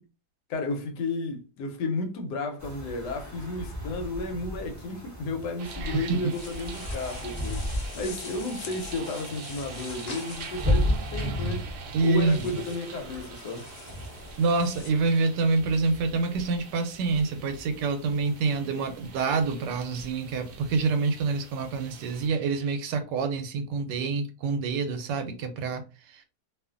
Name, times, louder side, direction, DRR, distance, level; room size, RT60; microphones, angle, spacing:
voice 1, 0.5-7.7 7.9-11.7 12.0-13.7, left 2 dB, 90° left, 1.2 m, -33 dB
sound 1, 2.6-22.3, left 1 dB, 30° right, 0.3 m, -36 dB
sound 2, 5.6-22.8, right 6 dB, 70° right, 1.0 m, -45 dB
voice 2, 5.8-6.3 11.9-12.5 14.4-26.2, right 4 dB, 85° right, 1.2 m, -27 dB
sound 3, 6.3-14.9, left 6 dB, 70° left, 1.0 m, -46 dB
2.7 x 2.4 x 2.3 m
omnidirectional pair, 1.8 m